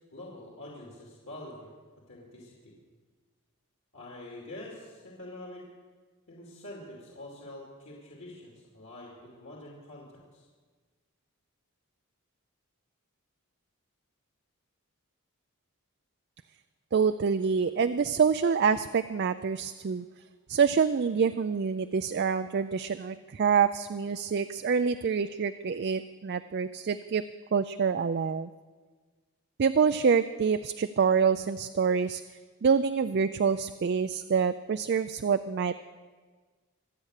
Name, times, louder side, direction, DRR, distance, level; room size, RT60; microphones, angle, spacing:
voice 1, 0.1-1.7 2.1-2.7 3.9-5.7 6.3-10.1 10.3-10.5, left 1 dB, 55° left, -3 dB, 2.8 m, -45 dB
voice 2, 16.9-20.0 20.5-27.2 27.5-28.5 29.6-32.2 32.6-35.7, right 6 dB, 45° right, 10 dB, 0.4 m, -26 dB
25.0 x 8.6 x 6.5 m, 1.4 s
head